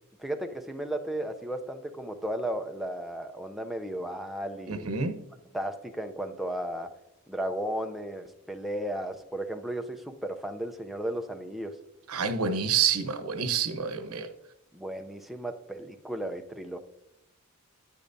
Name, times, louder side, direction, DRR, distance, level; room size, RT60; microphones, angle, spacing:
voice 1, 0.2-4.9 5.5-6.9 7.3-11.8 14.7-16.8, right 1 dB, ahead, 4 dB, 0.5 m, -34 dB
voice 2, 4.7-5.2 12.1-14.3, right 6 dB, 80° right, 9 dB, 0.9 m, -28 dB
10.0 x 9.4 x 2.6 m, 0.90 s
head